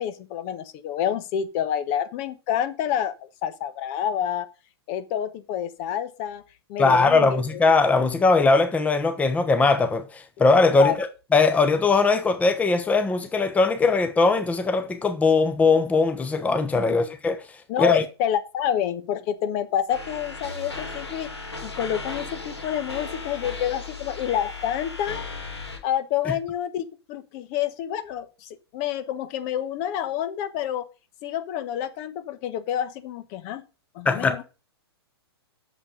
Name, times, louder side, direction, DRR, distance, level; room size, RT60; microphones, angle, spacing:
voice 1, 0.0-4.5 4.9-6.4 6.7-7.6 10.8-11.0 16.8-17.1 17.7-21.3 21.6-25.2 25.8-30.9 31.2-33.6 33.9-34.4, left 10 dB, 40° left, 1.1 m, -28 dB
voice 2, 6.8-17.4 17.8-18.0 34.0-34.4, left 3 dB, 10° left, 1.1 m, -20 dB
sound 1, 19.9-25.8, left 3 dB, 90° left, 4.3 m, -36 dB
8.6 x 7.2 x 5.1 m
figure-of-eight pair, 115°, 14 cm